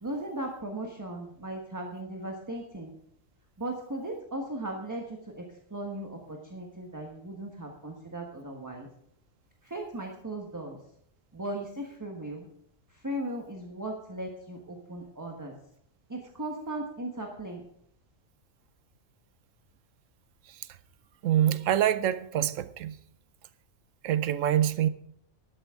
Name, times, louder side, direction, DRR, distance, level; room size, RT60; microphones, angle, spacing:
voice 1, 0.0-2.9 3.6-5.0 5.4-5.5 5.7-8.9 9.6-10.8 11.3-12.5 13.0-15.5 16.1-17.6, right 1 dB, 15° right, 1.2 m, -37 dB
voice 2, 21.2-23.0 24.0-24.9, right 11 dB, 75° right, 1.0 m, -25 dB
12.5 x 11.0 x 3.6 m
omnidirectional pair, 1.4 m